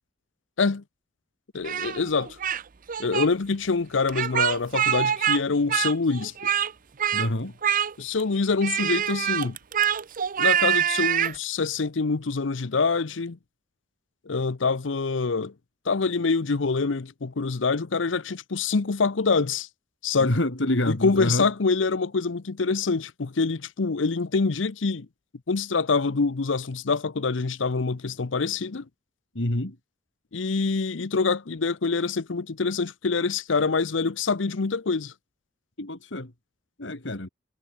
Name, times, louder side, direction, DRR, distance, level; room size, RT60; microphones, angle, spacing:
voice 1, 1.5-2.4 3.0-6.3 8.0-9.6 10.4-13.4 14.3-15.5 15.9-19.7 20.0-20.4 20.8-25.1 25.5-28.8 30.3-35.1, left 4 dB, 90° left, 0.8 m, -25 dB
Speech, 1.6-2.6 2.9-3.3 4.1-5.4 5.7-6.7 7.0-7.3 7.6-8.2 8.6-11.4, right 9 dB, 45° right, 0.7 m, -25 dB
voice 2, 7.1-7.5 20.2-21.5 29.3-29.8 35.8-36.3 36.8-37.3, left 1 dB, 70° left, 2.6 m, -27 dB
head